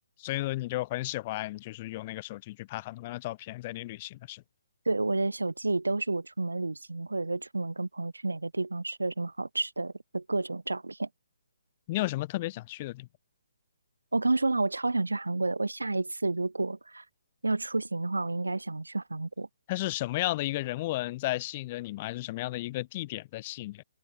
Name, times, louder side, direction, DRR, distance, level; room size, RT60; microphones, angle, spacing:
voice 1, 0.2-4.4 11.9-13.1 19.7-23.8, left 18 dB, 35° left, 3.3 m, -33 dB
voice 2, 4.9-11.1 14.1-17.0 17.4-19.5, right 2 dB, 90° right, 3.9 m, -30 dB
figure-of-eight pair, 140°, 0 cm